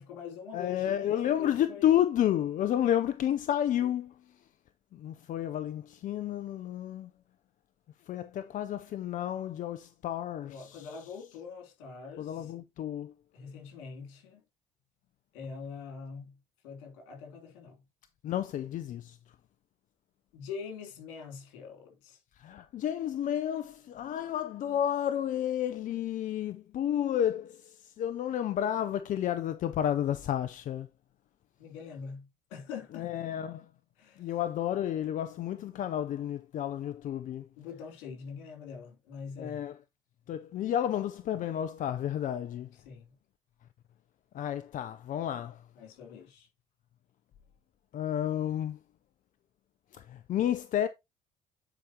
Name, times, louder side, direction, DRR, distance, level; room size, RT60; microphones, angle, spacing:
voice 1, 0.0-1.9 10.4-12.5 13.3-14.4 15.3-16.4 16.6-17.8 20.3-22.2 31.6-33.2 34.0-34.4 37.6-39.6 42.7-43.1 45.7-46.5, left 6 dB, 85° left, 3.1 m, -44 dB
voice 2, 0.5-4.1 4.9-7.1 8.1-10.9 12.2-13.1 18.2-19.2 22.4-30.9 33.0-33.6 34.2-37.5 39.4-39.7 40.3-42.7 44.3-45.6 47.9-48.8 49.9-50.9, left 11 dB, 60° left, 0.7 m, -31 dB
10.0 x 5.0 x 2.9 m
hypercardioid pair, 65°, 15 cm